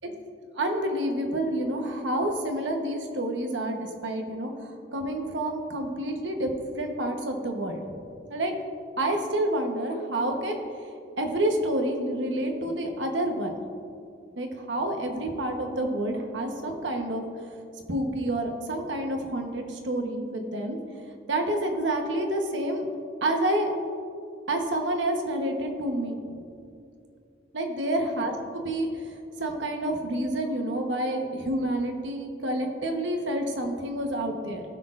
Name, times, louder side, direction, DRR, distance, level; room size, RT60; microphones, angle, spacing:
voice 1, 0.5-6.5 6.8-7.9 8.3-8.5 9.0-10.6 11.2-13.5 14.4-17.5 17.9-21.0 21.3-22.9 23.2-23.7 24.5-26.2 27.5-34.6, right 1 dB, 85° right, 3 dB, 1.1 m, -29 dB
16.5 x 6.3 x 2.5 m, 2.4 s
head